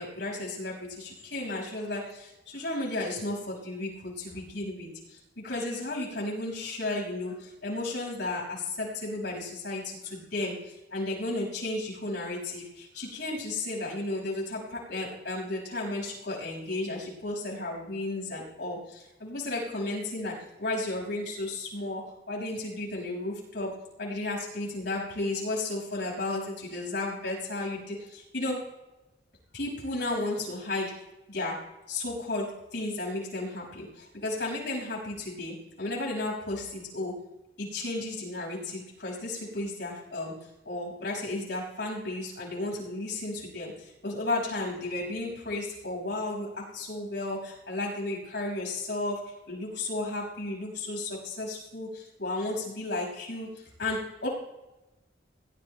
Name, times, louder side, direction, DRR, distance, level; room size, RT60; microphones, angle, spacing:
voice 1, 0.0-5.2 5.4-28.6 29.5-31.0 31.3-37.2 37.6-40.4 40.6-54.3, left 2 dB, 65° left, -2 dB, 5.8 m, -34 dB
21.5 x 18.5 x 2.2 m, 1.0 s
head